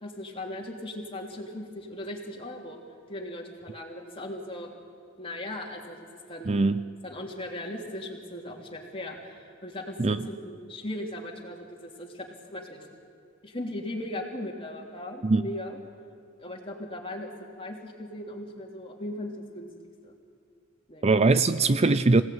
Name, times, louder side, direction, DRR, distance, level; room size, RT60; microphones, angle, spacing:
voice 1, 0.0-2.8 3.1-4.7 5.2-6.6 7.0-12.9 13.4-15.8 16.4-17.3 17.6-19.7 20.0-20.1 20.9-21.1, left 1 dB, 25° left, 3.3 m, -38 dB
voice 2, 6.5-6.8 10.0-10.3 15.2-15.4 21.0-22.2, right 3 dB, 30° right, 0.5 m, -21 dB
26.0 x 17.5 x 9.4 m
head